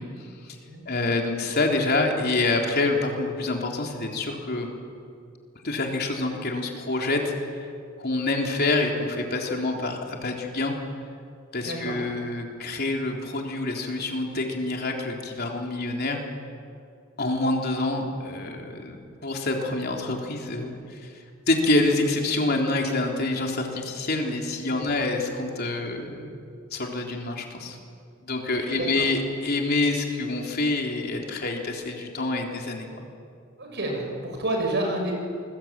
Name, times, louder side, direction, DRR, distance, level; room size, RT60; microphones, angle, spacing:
voice 1, 0.0-0.6 0.9-4.7 5.6-7.7 8.0-10.8 11.5-16.2 17.2-26.3 26.7-27.8 28.2-32.9, left 2 dB, 50° left, 1 dB, 3.7 m, -27 dB
voice 2, 28.7-29.0 33.6-35.1, right 2 dB, 55° right, 2 dB, 7.1 m, -29 dB
28.0 x 21.5 x 9.0 m, 2.3 s
head